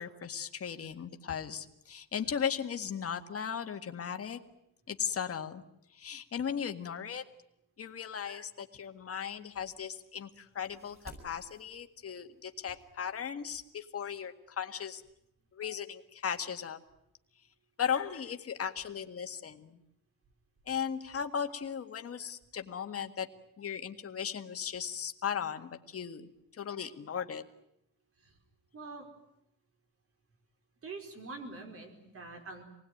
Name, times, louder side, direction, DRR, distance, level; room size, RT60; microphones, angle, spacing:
voice 1, 0.0-4.4 4.9-5.6 5.9-7.2 7.8-15.0 15.5-16.8 17.8-19.8 20.7-23.3 23.6-26.3 26.6-27.4, left 7 dB, 40° left, 6 dB, 1.8 m, -37 dB
sound 1, 8.8-13.8, right 1 dB, 15° right, 7.6 m, -57 dB
voice 2, 28.7-29.1 30.8-32.6, right 3 dB, 35° right, 4 dB, 4.7 m, -45 dB
27.5 x 20.0 x 9.3 m, 0.81 s
cardioid pair, 175°, 37 cm